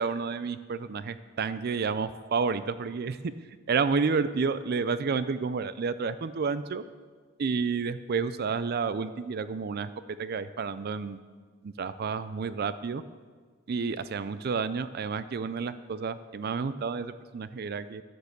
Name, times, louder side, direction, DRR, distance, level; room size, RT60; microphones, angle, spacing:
voice 1, 0.0-3.1 3.7-6.8 7.4-11.2 11.6-13.0 13.7-18.0, right 5 dB, 50° right, 14 dB, 0.4 m, -30 dB
11.5 x 9.3 x 6.6 m, 1.5 s
head